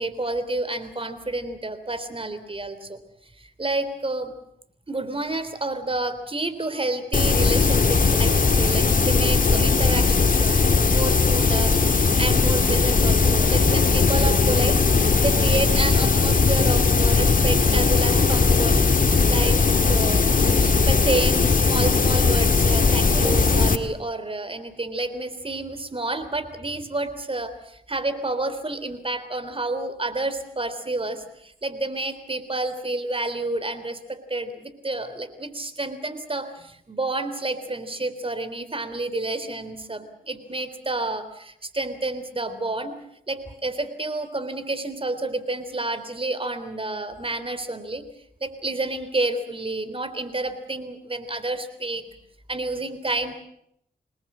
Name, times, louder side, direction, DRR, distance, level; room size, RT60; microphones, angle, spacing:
voice 1, 0.0-3.0 3.4-4.3 4.9-14.8 15.2-18.8 19.3-20.2 20.6-43.0 43.3-48.1 48.4-52.1 52.5-53.3, right 2 dB, 30° right, 12 dB, 3.7 m, -29 dB
sound 1, 7.1-23.8, left 4 dB, 50° left, 2.2 m, -19 dB
27.0 x 20.5 x 7.5 m, 0.74 s
cardioid pair, 50°, 18 cm